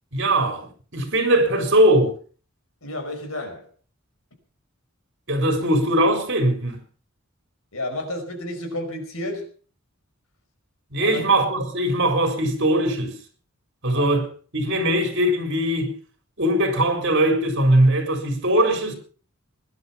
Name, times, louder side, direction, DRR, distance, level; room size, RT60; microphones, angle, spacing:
voice 1, 0.1-2.1 5.3-6.8 10.9-13.2 13.8-14.3 14.5-15.9 16.4-18.9, right 1 dB, 60° right, 4.1 m, -20 dB
voice 2, 2.8-3.7 7.7-9.5 11.0-11.2 13.9-14.1, left 1 dB, 80° left, 5.3 m, -31 dB
21.0 x 11.0 x 5.7 m
head